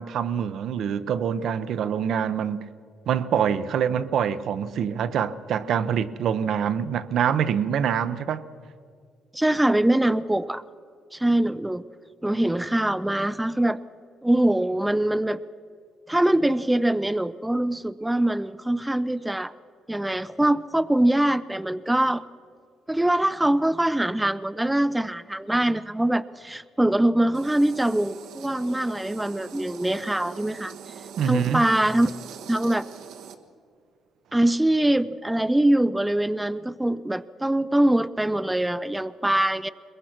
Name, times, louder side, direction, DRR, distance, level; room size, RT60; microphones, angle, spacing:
voice 1, 0.0-2.6 3.1-8.4 31.2-31.6, right 8 dB, 65° right, 0.8 m, -25 dB
voice 2, 9.3-10.6 11.1-11.8 12.2-13.8 14.2-15.4 16.1-19.5 19.9-22.2 22.9-30.9 31.3-32.1 32.5-32.9 34.3-39.7, right 1 dB, 5° right, 0.5 m, -23 dB
sound 1, 27.3-33.3, right 7 dB, 90° right, 1.5 m, -42 dB
22.0 x 21.5 x 6.0 m
cardioid pair, 110°, 0 cm